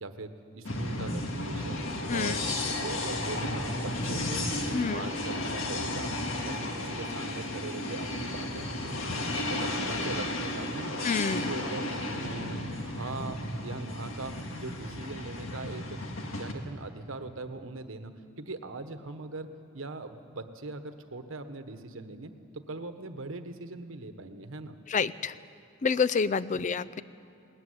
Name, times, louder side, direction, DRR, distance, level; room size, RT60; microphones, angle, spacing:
voice 1, 0.0-2.4 2.7-4.5 4.8-6.1 6.4-8.7 8.9-9.0 9.3-11.0 11.3-11.9 12.2-16.0 16.4-18.1 18.4-24.8 26.5-26.6, right 2 dB, 80° right, 8 dB, 1.2 m, -41 dB
sound 1, 0.6-16.5, left 1 dB, 80° left, 1.8 m, -33 dB
voice 2, 4.7-5.0 11.0-11.5 24.9-25.3 25.8-27.0, left 5 dB, 40° left, 16 dB, 0.4 m, -28 dB
19.0 x 14.0 x 9.8 m, 2.6 s
head